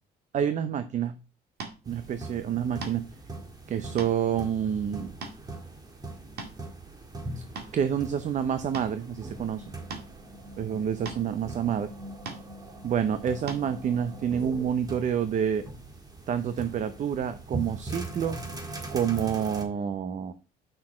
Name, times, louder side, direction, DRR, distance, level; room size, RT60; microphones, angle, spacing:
voice 1, 0.3-1.2 1.9-3.0 3.7-5.1 7.7-9.6 10.6-11.9 12.8-15.6 16.3-18.4 18.9-20.3, right 8 dB, 45° right, 11 dB, 0.7 m, -28 dB
sound 1, 1.6-1.8 2.8-3.1 3.7-4.2 4.7-4.8 5.2-5.4 6.1-6.7 7.2-7.7 8.7-8.9 9.9-10.1 11.1-11.2 12.3-12.5 13.5-13.6, right 4 dB, 65° right, 2.0 m, -38 dB
sound 2, 1.8-19.6, right 2 dB, 25° right, 1.7 m, -41 dB
6.7 x 5.9 x 4.3 m, 0.33 s
cardioid pair, 110°, 17 cm